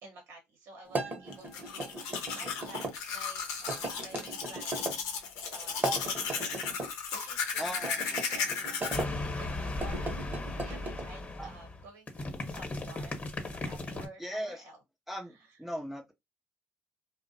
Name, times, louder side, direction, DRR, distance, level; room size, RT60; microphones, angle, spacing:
voice 1, 0.0-5.0 5.4-6.6 6.9-14.8 15.3-15.6, right 2 dB, 70° right, 0.8 m, -52 dB
sound 1, 0.9-2.9 3.7-5.0 5.7-6.9 7.8-9.1 9.7-11.1, right 2 dB, 35° right, 0.9 m, -37 dB
Domestic sounds home sounds, 1.3-9.0, left 6 dB, 80° left, 0.6 m, -35 dB
voice 2, 7.6-8.2 11.4-11.5 14.2-14.6 15.1-16.1, equal, 5° right, 0.5 m, -38 dB
sound 2, 8.9-14.1, left 2 dB, 30° left, 1.0 m, -37 dB
2.5 x 2.0 x 2.6 m
hypercardioid pair, 65°, 5 cm